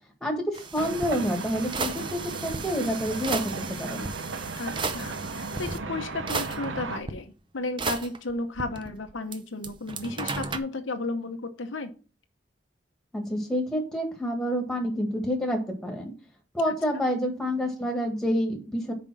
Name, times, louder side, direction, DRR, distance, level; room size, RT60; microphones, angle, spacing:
voice 1, 0.2-4.1 13.1-16.1 16.5-18.9, equal, 5° left, 2 dB, 1.6 m, -28 dB
sound 1, 0.5-5.8 6.3-7.1 7.8-9.4 9.6-10.6, right 4 dB, 25° right, 0.5 m, -34 dB
sound 2, 0.8-7.0, right 3 dB, 80° right, 0.8 m, -36 dB
voice 2, 4.6-11.9, left 2 dB, 85° left, 6 dB, 0.9 m, -34 dB
5.5 x 5.2 x 6.0 m, 0.35 s
head